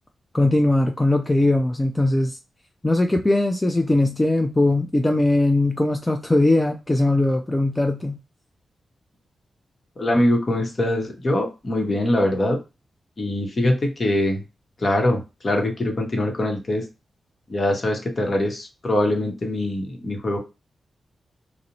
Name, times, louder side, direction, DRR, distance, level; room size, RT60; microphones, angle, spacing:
voice 1, 0.3-2.4 2.8-8.2, left 2 dB, 20° left, 0.4 m, -20 dB
voice 2, 10.0-12.6 13.2-14.4 14.8-16.9 17.5-20.4, left 1 dB, 50° left, 0.9 m, -23 dB
2.5 x 2.0 x 2.8 m
cardioid pair, 50°, 0 cm